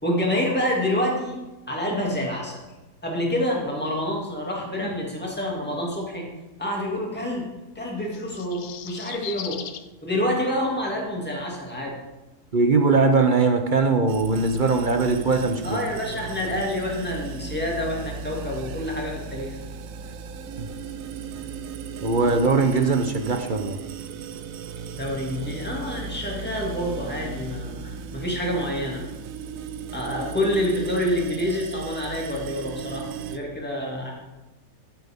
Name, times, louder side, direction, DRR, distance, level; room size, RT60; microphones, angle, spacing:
voice 1, 0.0-1.4 1.7-2.6 3.0-6.3 6.6-7.5 7.7-9.6 10.0-12.0 15.6-19.6 24.9-29.0 29.9-34.1, left 1 dB, 5° left, -2 dB, 2.3 m, -27 dB
sound 1, 8.0-9.9 11.3-11.4, left 9 dB, 65° left, 0.7 m, -38 dB
voice 2, 12.5-15.8 20.6-20.7 22.0-23.8, right 4 dB, 45° right, 6 dB, 0.7 m, -21 dB
sound 2, 14.1-33.4, right 6 dB, 70° right, 1.0 m, -36 dB
15.0 x 8.0 x 3.6 m, 1.1 s
omnidirectional pair, 1.6 m